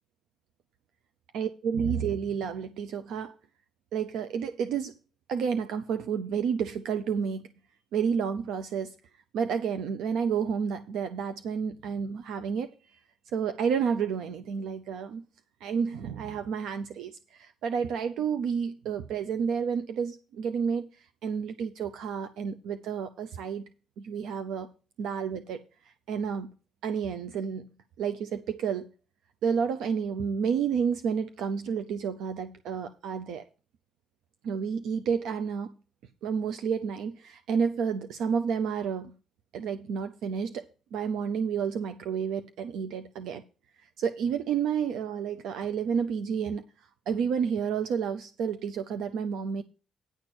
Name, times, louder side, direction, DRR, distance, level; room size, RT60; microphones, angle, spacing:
voice 1, 1.3-3.4 3.9-4.9 5.3-7.5 7.9-8.9 9.3-13.0 13.3-15.2 15.6-23.7 24.0-24.7 25.0-26.5 26.8-27.7 28.0-28.9 29.4-33.4 34.4-35.7 36.2-39.1 39.5-40.6 40.9-43.4 44.0-49.6, right 6 dB, 85° right, 0.6 m, -30 dB
10.0 x 4.4 x 7.6 m
cardioid pair, 90°, 0 cm